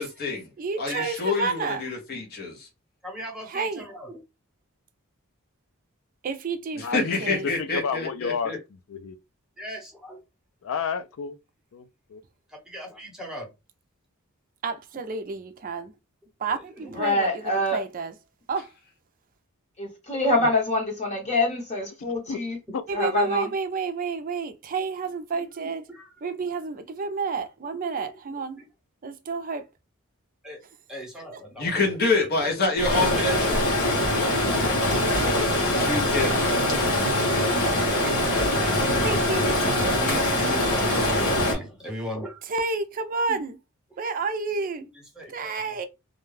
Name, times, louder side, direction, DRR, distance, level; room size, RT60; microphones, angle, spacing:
voice 1, 0.0-0.4 0.8-2.7 6.8-8.6 31.6-33.8 35.2-36.9, left 3 dB, 45° left, 0.8 m, -27 dB
voice 2, 0.6-1.8 3.5-3.9 6.2-7.5 14.6-15.9 16.4-18.1 18.5-18.7 22.9-25.8 26.2-28.6 29.0-29.6 31.3-31.4 35.0-35.5 39.0-39.9 42.5-43.6 44.0-44.8 45.3-45.9, right 4 dB, 40° right, 0.4 m, -30 dB
voice 3, 3.0-4.2 9.6-10.2 12.7-13.5 16.5-17.0 25.6-26.1 28.3-28.6 30.4-30.6 30.9-32.0 32.7-33.6 37.7-42.4 43.3-43.4 45.2-45.5, equal, 5° right, 0.8 m, -37 dB
voice 4, 6.8-9.2 10.6-11.4 11.7-11.8 12.1-12.2 20.4-20.5 22.3-22.4 22.7-22.8, left 6 dB, 65° left, 0.4 m, -31 dB
voice 5, 16.9-17.8 19.8-22.6 22.9-23.5, left 2 dB, 30° left, 1.1 m, -25 dB
Stream, 32.8-41.5, left 1 dB, 85° left, 1.1 m, -23 dB
2.5 x 2.2 x 3.1 m
head